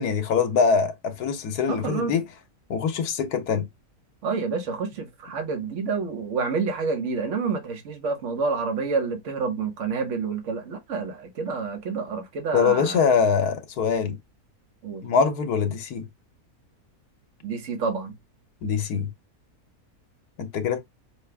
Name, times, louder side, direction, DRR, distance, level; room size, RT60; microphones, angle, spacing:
voice 1, 0.0-2.2 2.7-3.7 12.5-14.2 15.0-16.0 18.6-19.1 20.4-20.8, left 6 dB, 80° left, 1.4 m, -23 dB
voice 2, 1.7-2.1 4.2-13.1 14.8-15.0 17.4-18.1, right 4 dB, 55° right, 1.4 m, -28 dB
5.9 x 2.4 x 3.4 m
omnidirectional pair, 1.6 m